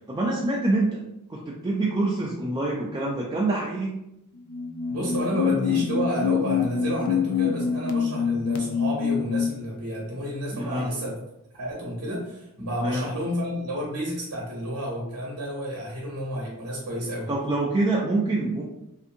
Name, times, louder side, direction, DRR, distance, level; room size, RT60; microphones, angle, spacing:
voice 1, 0.1-1.0 1.3-3.9 10.5-10.9 12.8-13.1 17.3-18.6, right 2 dB, 20° right, -4 dB, 0.3 m, -26 dB
sound 1, 4.4-9.6, left 7 dB, 85° left, 0.4 m, -25 dB
voice 2, 4.9-11.2 11.5-17.3, equal, 85° right, -4 dB, 0.8 m, -31 dB
2.5 x 2.5 x 2.6 m, 0.83 s
head